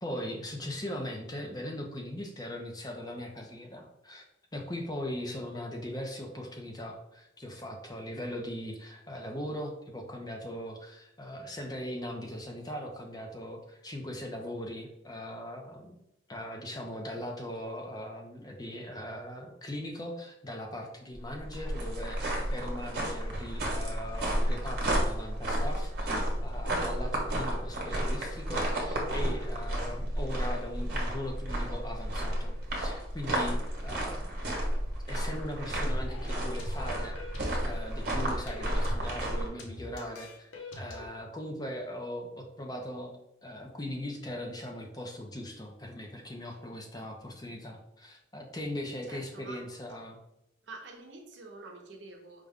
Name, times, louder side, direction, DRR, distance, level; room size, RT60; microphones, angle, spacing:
voice 1, 0.0-4.2 4.5-16.0 16.3-34.6 35.1-37.2 37.4-43.2 43.4-50.2, left 1 dB, 20° left, 1 dB, 0.5 m, -40 dB
sound 1, 21.1-39.5, right 1 dB, 50° right, 1.1 m, -32 dB
sound 2, 35.8-41.1, left 1 dB, 85° left, 0.8 m, -44 dB
voice 2, 49.0-49.7 50.6-52.5, right 2 dB, 75° right, 2 dB, 0.7 m, -47 dB
5.0 x 2.2 x 3.5 m, 0.82 s
head